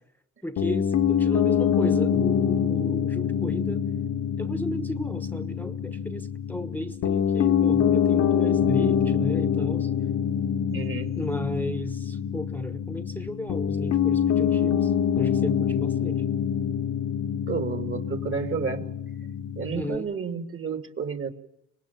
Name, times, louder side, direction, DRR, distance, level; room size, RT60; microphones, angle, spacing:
voice 1, 0.4-3.8 4.4-9.9 11.1-16.2 19.7-20.1, left 1 dB, 5° left, 10 dB, 1.1 m, -34 dB
Piano, 0.6-20.0, left 8 dB, 70° left, 1.3 m, -25 dB
voice 2, 10.7-11.1 17.5-18.8 19.6-21.3, right 6 dB, 45° right, 7 dB, 2.4 m, -31 dB
25.0 x 19.5 x 7.2 m, 0.80 s
cardioid pair, 90°, 30 cm